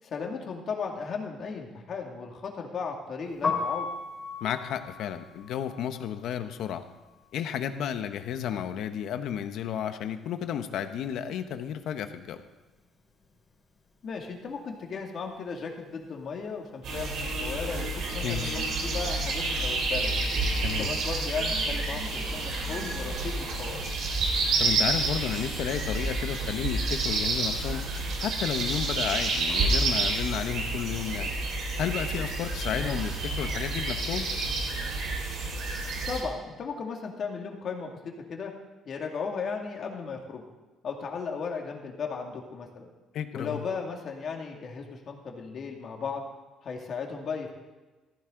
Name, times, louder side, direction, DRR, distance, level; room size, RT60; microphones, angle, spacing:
voice 1, 0.0-3.9 14.0-18.5 18.8-20.2 20.8-23.9 32.7-33.0 36.1-38.5 38.9-40.4 40.8-42.9 43.3-46.2 46.6-47.5, left 5 dB, 50° left, 1 dB, 2.4 m, -36 dB
Piano, 3.3-9.2 9.5-11.1 11.4-17.8, left 4 dB, 25° left, 4.3 m, -38 dB
voice 2, 4.4-6.8 7.3-12.4 18.2-18.6 20.6-20.9 24.6-27.8 28.2-31.3 31.8-34.3 43.1-43.6, left 9 dB, 70° left, 9 dB, 1.1 m, -32 dB
sound 1, 16.8-36.2, right 3 dB, 70° right, 3.9 m, -29 dB
15.0 x 15.0 x 3.9 m, 1.2 s
cardioid pair, 120°, 0 cm